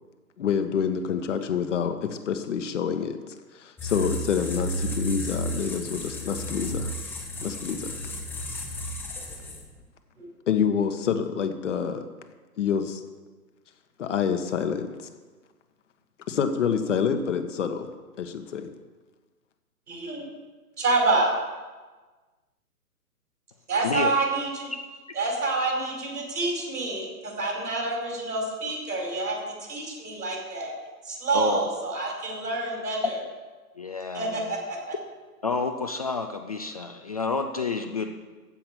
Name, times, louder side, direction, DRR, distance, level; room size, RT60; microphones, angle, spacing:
voice 1, 0.4-6.9 7.4-8.0 10.5-12.0 12.6-13.0 14.0-14.9 16.3-17.9 18.2-18.7, left 7 dB, 50° left, 7 dB, 1.4 m, -27 dB
sound 1, 3.8-9.8, equal, 5° left, 0.8 m, -33 dB
voice 2, 19.9-20.3 20.8-21.3 23.7-24.7 25.1-30.7 31.0-33.2 34.1-35.0, right 3 dB, 75° right, 0 dB, 5.3 m, -28 dB
voice 3, 33.8-34.5 35.4-38.1, left 4 dB, 25° left, 6 dB, 0.4 m, -29 dB
15.0 x 5.8 x 8.5 m, 1.3 s
figure-of-eight pair, 130°, 46 cm